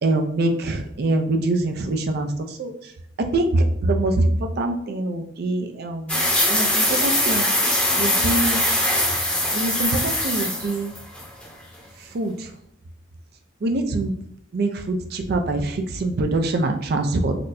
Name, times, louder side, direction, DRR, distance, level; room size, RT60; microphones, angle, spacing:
voice 1, 0.0-2.9 3.3-7.5 8.0-8.6 9.5-10.9 12.1-12.5 13.6-14.1 14.5-17.4, right 2 dB, 55° right, 5 dB, 0.4 m, -24 dB
sound 1, 6.1-11.4, left 1 dB, 5° left, 0.7 m, -22 dB
4.3 x 2.1 x 2.6 m, 0.76 s
head